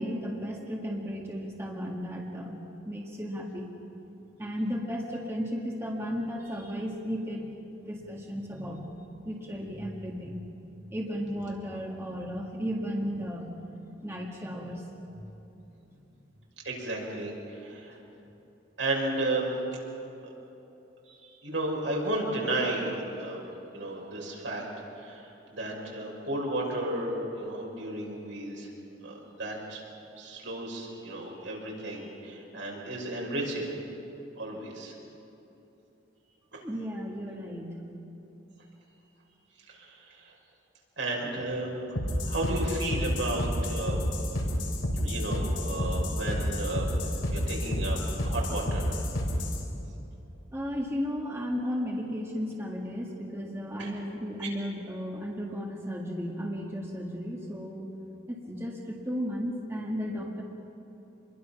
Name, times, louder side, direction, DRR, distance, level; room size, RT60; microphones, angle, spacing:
voice 1, 0.0-3.7 4.4-7.4 7.8-8.9 9.2-10.4 10.9-13.6 14.0-14.9 15.2-15.3 36.6-37.8 50.5-57.9 58.3-60.4, equal, 15° right, -2 dB, 1.8 m, -34 dB
voice 2, 16.6-18.0 18.8-19.5 20.2-20.3 21.1-23.4 23.7-24.6 25.0-28.7 29.0-29.8 30.2-33.7 34.4-34.9 36.5-36.6 39.7-40.3 41.0-41.7 42.2-44.0 44.9-46.9 47.3-48.9 53.8-53.9, right 1 dB, 75° right, -2 dB, 5.8 m, -33 dB
sound 1, 41.9-49.6, left 1 dB, 90° left, 4.2 m, -30 dB
27.0 x 22.0 x 5.9 m, 3.0 s
head